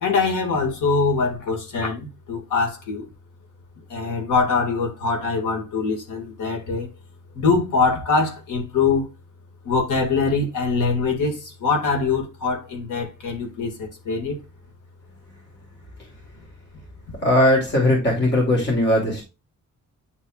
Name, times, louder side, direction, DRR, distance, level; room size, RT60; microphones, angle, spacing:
voice 1, 0.0-3.1 3.9-6.9 7.3-9.1 9.6-14.4, left 4 dB, 80° left, 2.1 m, -23 dB
voice 2, 17.2-19.2, left 1 dB, 35° left, 2.7 m, -19 dB
9.6 x 4.5 x 2.4 m
cardioid pair, 125°, 30 cm